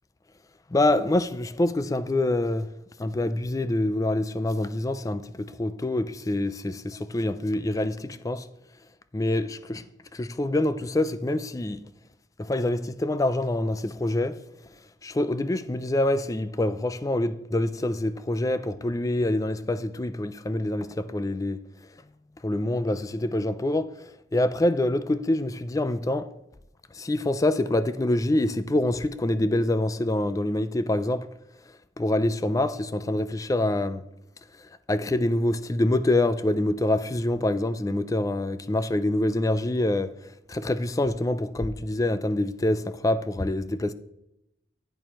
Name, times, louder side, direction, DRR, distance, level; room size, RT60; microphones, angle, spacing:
voice 1, 0.7-2.7 3.0-8.5 9.1-9.9 10.1-11.8 12.4-14.4 15.0-21.6 22.4-26.3 26.9-31.3 32.0-34.0 34.9-40.1 40.5-43.9, left 1 dB, 20° left, 0.4 m, -26 dB
11.0 x 8.9 x 3.0 m
head